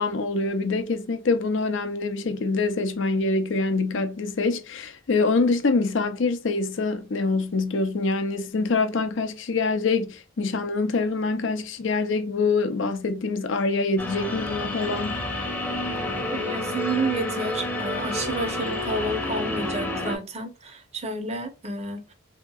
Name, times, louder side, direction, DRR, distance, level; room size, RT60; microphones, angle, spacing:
voice 1, 0.0-15.2, left 3 dB, 65° left, 0.5 m, -25 dB
sound 1, 14.0-20.2, left 1 dB, 10° left, 0.7 m, -29 dB
voice 2, 16.3-22.1, right 2 dB, 30° right, 0.7 m, -30 dB
3.5 x 2.9 x 2.3 m
head